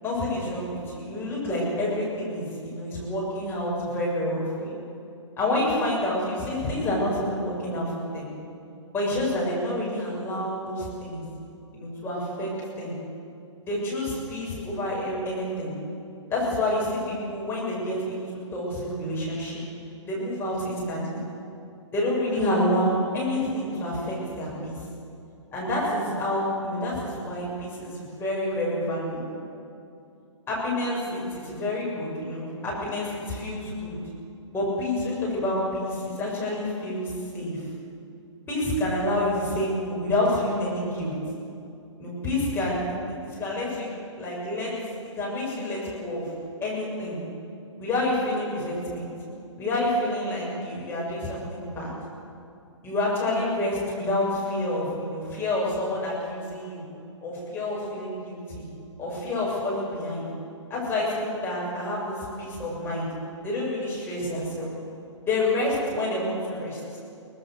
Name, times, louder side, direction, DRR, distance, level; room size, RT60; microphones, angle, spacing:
voice 1, 0.0-4.7 5.4-8.3 8.9-11.2 11.7-12.5 12.8-13.0 13.6-15.7 16.3-18.2 18.5-19.6 20.0-21.2 21.9-24.8 25.5-29.2 30.5-34.0 34.5-37.6 38.5-41.1 42.0-44.7 45.0-46.3 46.6-47.2 47.8-49.1 49.6-51.9 52.8-56.8 57.2-58.7 59.0-60.3 60.7-63.1 63.4-64.7 65.3-66.8, left 1 dB, 15° left, -5 dB, 7.4 m, -28 dB
24.0 x 19.5 x 6.8 m, 2.6 s
figure-of-eight pair, 130°, 16 cm